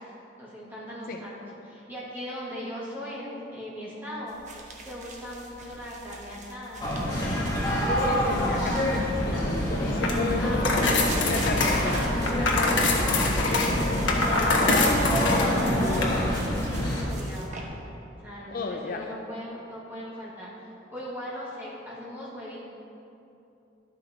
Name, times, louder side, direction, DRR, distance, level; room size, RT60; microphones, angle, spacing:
voice 1, 0.4-7.8 9.3-9.5 10.4-11.0 11.6-17.5 18.2-22.6, equal, 10° right, -7 dB, 1.9 m, -39 dB
sound 1, 4.3-9.0 10.9-17.6, right 3 dB, 40° right, 1.0 m, -44 dB
sound 2, 6.8-17.0, equal, 20° left, 1.4 m, -27 dB
voice 2, 7.9-12.1 18.5-19.2, left 3 dB, 50° left, 4 dB, 0.5 m, -34 dB
sound 3, 9.9-16.0, left 2 dB, 90° left, 1.2 m, -25 dB
11.0 x 6.0 x 4.2 m, 2.8 s
head